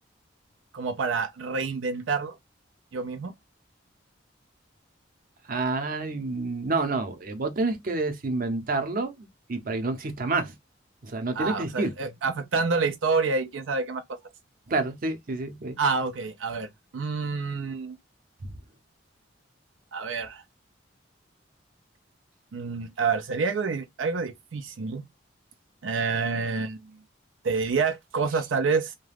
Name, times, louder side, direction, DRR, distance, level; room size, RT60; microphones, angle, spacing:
voice 1, 0.7-2.4 2.9-3.3 11.3-14.0 15.8-16.7 16.9-18.0 19.9-20.4 22.5-25.0 25.8-27.0 27.4-28.9, right 4 dB, 90° right, 0.4 m, -28 dB
voice 2, 5.5-9.2 9.5-10.5 11.0-11.9 14.7-15.8, right 3 dB, 50° right, 0.6 m, -28 dB
2.3 x 2.2 x 3.2 m
head